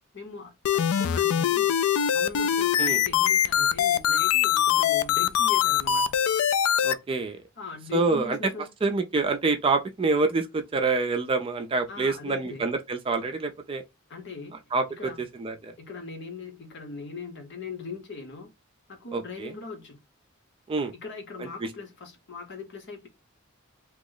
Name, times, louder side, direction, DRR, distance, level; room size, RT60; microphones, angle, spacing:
voice 1, 0.1-1.7 2.1-6.1 7.6-8.7 11.9-12.6 14.1-14.6 15.0-15.2 15.8-18.5 18.9-20.0 21.0-23.1, left 4 dB, 55° left, 0.9 m, -40 dB
sound 1, 0.6-6.9, left 9 dB, 85° left, 0.3 m, -23 dB
voice 2, 6.8-7.4 7.9-8.4 8.8-13.8 14.7-15.7 19.1-19.5 20.7-20.9 21.4-21.7, right 3 dB, 25° right, 0.4 m, -27 dB
2.9 x 2.0 x 3.7 m
head